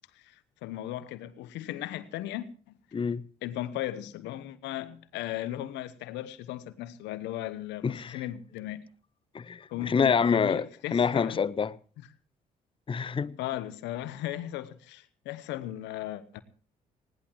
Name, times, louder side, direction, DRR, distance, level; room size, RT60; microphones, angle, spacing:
voice 1, 0.6-2.8 3.4-8.8 9.7-11.4 13.4-16.4, left 13 dB, 70° left, 1.0 m, -37 dB
voice 2, 2.9-3.2 7.8-8.2 9.3-10.7 10.9-11.8 12.9-13.3, left 6 dB, 30° left, 0.6 m, -26 dB
20.0 x 17.5 x 3.1 m
hypercardioid pair, 45°, 19 cm